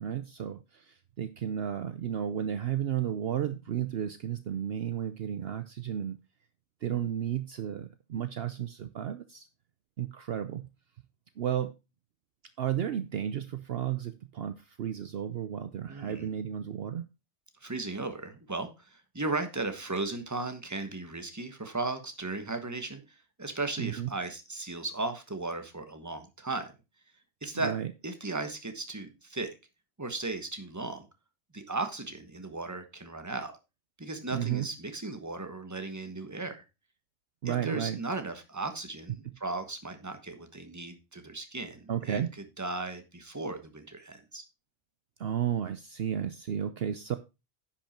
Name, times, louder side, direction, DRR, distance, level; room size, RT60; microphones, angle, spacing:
voice 1, 0.0-6.2 6.8-9.5 10.0-10.7 11.4-11.7 12.6-17.1 23.8-24.1 27.6-27.9 34.3-34.7 37.4-38.0 41.9-42.3 45.2-47.2, right 9 dB, 60° right, 11 dB, 0.8 m, -33 dB
voice 2, 15.9-16.3 17.6-26.7 27.4-27.7 28.0-29.5 30.0-31.1 31.5-33.5 34.0-36.6 37.4-42.3 42.6-44.4, right 3 dB, 15° right, 8 dB, 1.3 m, -36 dB
10.5 x 5.9 x 4.4 m, 0.27 s
omnidirectional pair, 1.2 m